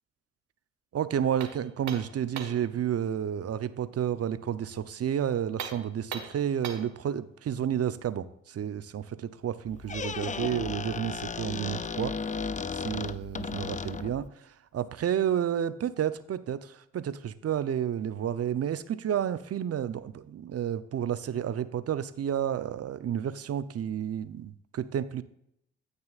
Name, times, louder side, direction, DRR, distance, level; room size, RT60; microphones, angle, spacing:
voice 1, 0.9-12.2 12.7-25.2, right 9 dB, 55° right, 14 dB, 0.8 m, -31 dB
sound 1, 1.4-2.7 5.5-7.0, right 7 dB, 70° right, 1.6 m, -39 dB
Squeak, 9.7-14.3, left 5 dB, 25° left, 0.5 m, -35 dB
16.0 x 6.7 x 2.5 m, 0.75 s
supercardioid pair, 60°, 30 cm